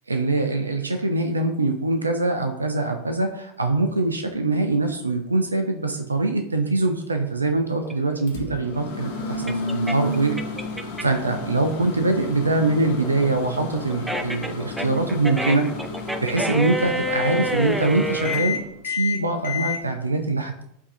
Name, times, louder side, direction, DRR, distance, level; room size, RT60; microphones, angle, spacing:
voice 1, 0.1-10.4 11.0-15.7 16.2-20.6, right 2 dB, 85° right, 5 dB, 0.3 m, -23 dB
sound 1, 7.8-11.3 11.7-18.4, right 1 dB, 5° right, 0.3 m, -29 dB
Microwave oven, 8.3-19.8, left 3 dB, 60° left, 0.6 m, -32 dB
4.5 x 2.6 x 2.5 m, 0.75 s
figure-of-eight pair, 85°, 0 cm